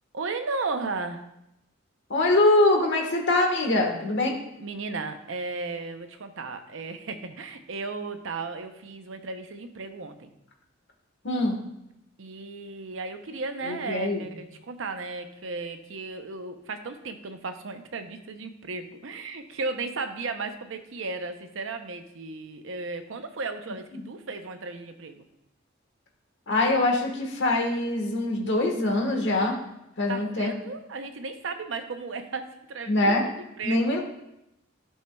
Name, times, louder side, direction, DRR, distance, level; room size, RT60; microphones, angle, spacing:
voice 1, 0.1-1.3 4.3-10.3 12.2-25.2 30.1-33.9, right 3 dB, 70° right, 7 dB, 0.7 m, -35 dB
voice 2, 2.1-4.4 11.2-11.6 13.7-14.3 26.5-29.6 30.0-30.5 32.9-33.2 33.6-34.0, left 2 dB, 65° left, 1 dB, 1.3 m, -23 dB
11.5 x 5.5 x 2.3 m, 0.84 s
head